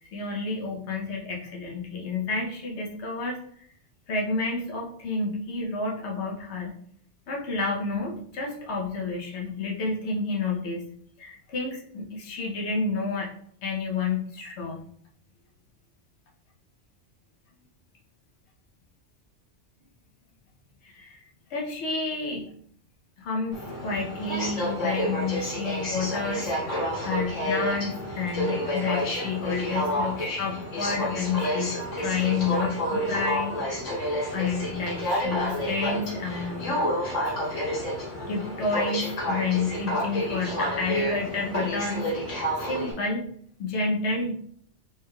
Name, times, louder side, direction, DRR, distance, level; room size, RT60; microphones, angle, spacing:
voice 1, 0.0-3.4 4.1-6.7 7.3-10.8 11.2-13.3 13.6-14.8 20.8-21.2 21.5-22.5 23.2-33.8 34.3-36.8 37.2-37.6 38.3-43.2 43.6-44.3, left 4 dB, 65° left, -1 dB, 1.1 m, -30 dB
Aircraft, 23.5-42.9, equal, 90° left, 1.6 m, -29 dB
4.3 x 3.4 x 2.3 m, 0.62 s
omnidirectional pair, 1.2 m